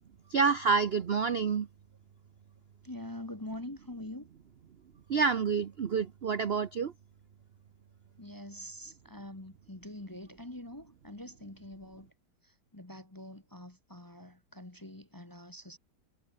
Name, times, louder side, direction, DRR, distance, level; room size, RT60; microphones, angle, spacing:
voice 1, 0.3-1.7 5.1-6.9, right 5 dB, 50° right, 0.8 m, -28 dB
voice 2, 2.8-4.3 8.2-12.1 12.4-15.8, left 1 dB, 15° left, 1.1 m, -45 dB
omnidirectional pair, 2.0 m